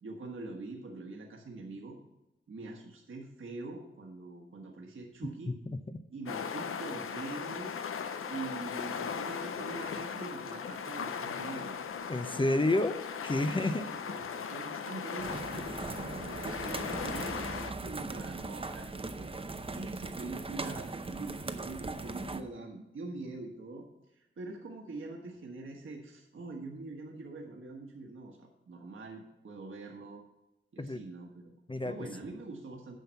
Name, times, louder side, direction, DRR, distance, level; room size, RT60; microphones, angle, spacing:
voice 1, 0.0-2.0 2.5-5.5 6.1-7.7 8.3-11.7 13.4-19.3 19.7-23.9 24.1-30.2 30.7-31.6 31.8-32.9, right 3 dB, 70° right, 0 dB, 1.4 m, -44 dB
sound 1, 6.3-17.7, left 6 dB, 90° left, 0.7 m, -38 dB
voice 2, 12.1-13.9 30.8-31.0 31.7-32.0, left 2 dB, 25° left, 9 dB, 0.6 m, -30 dB
sound 2, 15.2-22.4, right 3 dB, 25° right, 0.7 m, -39 dB
9.3 x 5.8 x 7.0 m, 0.93 s
wide cardioid pair, 80°, 21 cm